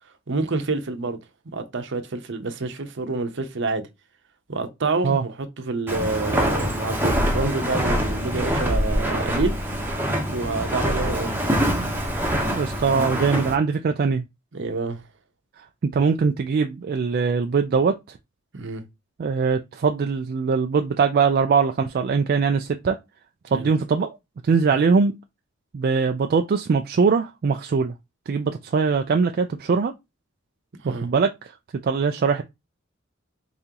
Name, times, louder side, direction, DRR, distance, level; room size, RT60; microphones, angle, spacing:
voice 1, 0.3-1.2 1.5-3.9 4.5-9.5 10.3-11.4 14.5-15.0 18.5-18.8 23.5-23.7 30.8-31.1, right 3 dB, 65° right, 0.8 m, -28 dB
Walk footsteps, 5.9-13.6, equal, 10° right, 0.9 m, -24 dB
voice 2, 12.5-14.2 15.9-18.2 19.2-23.0 23.5-24.2 24.4-25.1 25.7-27.9 28.3-29.9 31.0-31.3 31.8-32.4, right 5 dB, 45° right, 0.3 m, -21 dB
4.0 x 3.7 x 2.8 m
head